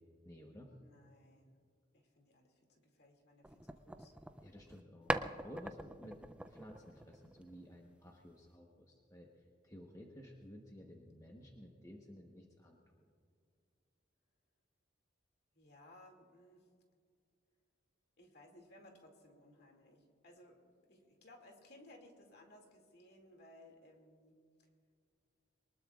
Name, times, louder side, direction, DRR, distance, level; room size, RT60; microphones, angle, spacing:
voice 1, 0.2-0.7 4.4-5.1 5.4-6.2 6.5-9.3 9.6-13.0, equal, 15° left, 0 dB, 1.1 m, -54 dB
voice 2, 0.8-1.6 1.9-4.1 15.5-16.7 18.2-24.7, left 1 dB, 55° left, 2 dB, 2.4 m, -61 dB
sound 1, 3.4-4.8 5.1-7.7, right 1 dB, 5° right, 0.3 m, -42 dB
23.5 x 19.5 x 2.4 m, 2.2 s
head